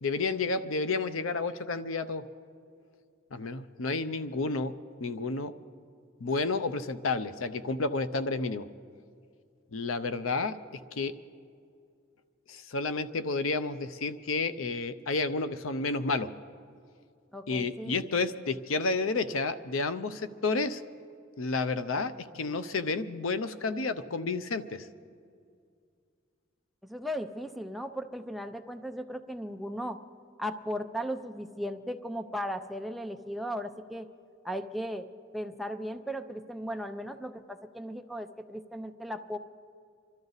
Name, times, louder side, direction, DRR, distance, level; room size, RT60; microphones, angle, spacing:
voice 1, 0.0-2.2 3.3-4.7 5.0-5.5 6.2-8.7 9.7-10.6 10.9-11.1 12.5-16.3 17.5-20.8 21.4-24.9, left 3 dB, 90° left, 12 dB, 0.6 m, -31 dB
voice 2, 17.3-17.9 26.8-30.0 30.4-34.1 34.4-35.1 35.3-39.4, equal, ahead, 9 dB, 0.5 m, -36 dB
26.5 x 12.5 x 4.0 m, 2.3 s
head